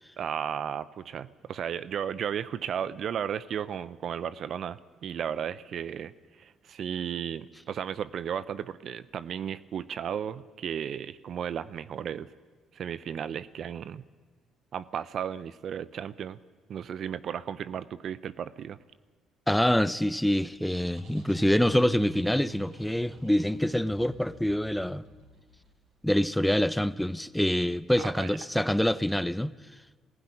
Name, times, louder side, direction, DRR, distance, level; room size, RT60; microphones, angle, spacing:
voice 1, 0.2-6.1 6.4-12.3 12.7-14.0 14.7-16.4 16.7-18.8 28.0-28.3, right 8 dB, 60° right, 0.7 m, -34 dB
voice 2, 19.5-25.1 26.0-29.5, left 1 dB, 5° left, 0.8 m, -26 dB
sound 1, 20.6-25.9, right 5 dB, 75° right, 5.0 m, -48 dB
18.5 x 15.5 x 9.9 m
hypercardioid pair, 55°, 0 cm